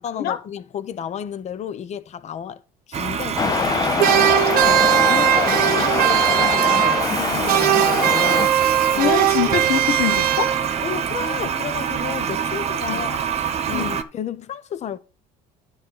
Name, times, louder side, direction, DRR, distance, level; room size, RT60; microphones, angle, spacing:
voice 1, 0.0-2.6 2.9-4.4 4.6-8.6 8.9-9.1 10.8-15.0, left 8 dB, 40° left, 0.9 m, -32 dB
Toilet flush, 2.9-14.0, right 7 dB, 40° right, 1.1 m, -26 dB
sound 1, 3.4-8.5, left 6 dB, 20° left, 0.4 m, -24 dB
sound 2, 4.0-7.2 7.5-10.9, right 12 dB, 60° right, 0.9 m, -19 dB
voice 2, 9.0-10.6 12.9-13.0 13.7-14.0, left 10 dB, 65° left, 1.3 m, -24 dB
10.5 x 4.1 x 7.0 m
supercardioid pair, 105°, 17 cm